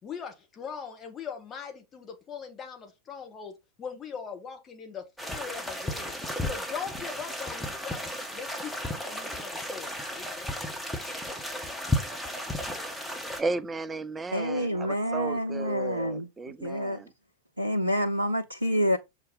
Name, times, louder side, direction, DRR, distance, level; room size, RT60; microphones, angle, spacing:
voice 1, 0.0-3.5 3.8-5.0 5.3-6.1 6.5-10.6, left 6 dB, 25° left, 1.7 m, -40 dB
sound 1, 5.2-13.4, left 1 dB, 5° left, 1.6 m, -34 dB
voice 2, 13.4-17.1, right 3 dB, 15° right, 0.6 m, -34 dB
voice 3, 14.3-16.3 16.6-17.0 17.6-19.0, equal, 85° right, 0.6 m, -28 dB
6.8 x 4.0 x 4.9 m
figure-of-eight pair, 90°, 0 cm